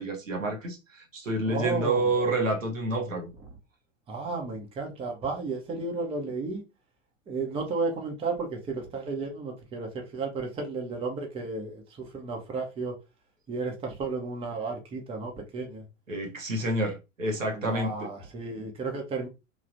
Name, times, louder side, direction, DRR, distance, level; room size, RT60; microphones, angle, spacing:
voice 1, 0.0-3.3 16.1-18.1, right 2 dB, 80° right, 0.9 m, -29 dB
voice 2, 1.4-2.0 4.1-6.6 7.3-13.0 13.5-15.8 17.5-19.3, right 3 dB, 15° right, 0.7 m, -33 dB
3.2 x 2.4 x 2.5 m
figure-of-eight pair, 90°, 38 cm